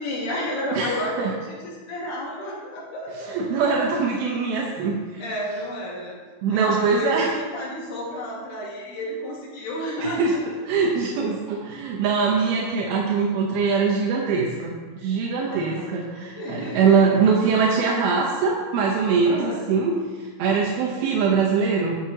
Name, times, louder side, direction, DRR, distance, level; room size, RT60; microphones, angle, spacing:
voice 1, 0.0-1.2 1.5-3.4 5.2-6.2 6.5-10.4 15.5-16.9 19.3-19.6, left 1 dB, 90° left, -4 dB, 4.4 m, -31 dB
voice 2, 0.7-1.3 3.3-5.3 6.4-7.3 10.0-10.3 10.7-22.0, right 5 dB, 75° right, -2 dB, 2.3 m, -22 dB
16.0 x 7.4 x 2.9 m, 1.4 s
omnidirectional pair, 5.5 m